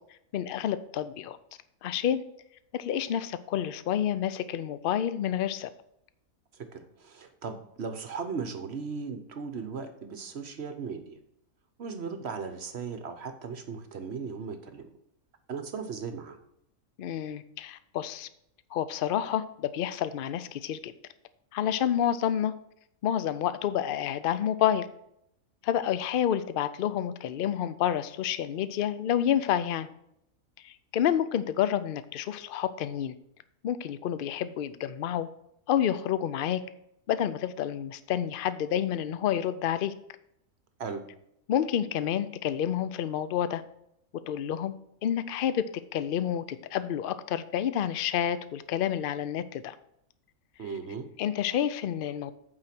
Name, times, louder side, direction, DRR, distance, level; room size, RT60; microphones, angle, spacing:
voice 1, 0.3-1.4 1.8-2.2 2.7-5.7 17.0-18.3 18.7-20.9 21.5-22.5 23.0-24.9 25.6-29.9 30.6-33.1 33.6-35.3 35.7-36.6 37.1-39.9 41.5-43.6 44.3-44.8 45.0-45.6 45.9-49.8 51.2-52.3, left 10 dB, 65° left, 14 dB, 0.5 m, -29 dB
voice 2, 6.5-11.2 11.8-14.9 15.5-16.4 40.8-41.0 50.6-51.1, right 5 dB, 55° right, 8 dB, 1.0 m, -37 dB
8.6 x 4.9 x 5.9 m, 0.76 s
omnidirectional pair, 1.5 m